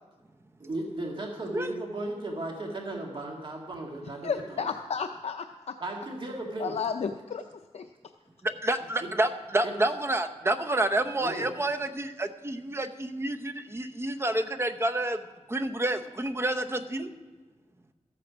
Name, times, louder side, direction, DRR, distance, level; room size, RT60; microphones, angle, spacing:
voice 1, 0.6-4.7 5.8-6.7 9.0-9.1 9.6-9.7 11.2-11.5, right 2 dB, 45° right, 0 dB, 1.9 m, -36 dB
voice 2, 4.2-5.7 6.6-7.4 7.7-7.8, left 6 dB, 65° left, 6 dB, 0.6 m, -32 dB
voice 3, 8.4-15.2 15.5-17.1, right 1 dB, 20° right, 6 dB, 0.8 m, -29 dB
14.0 x 8.6 x 6.1 m, 1.3 s
wide cardioid pair, 130°, 12 cm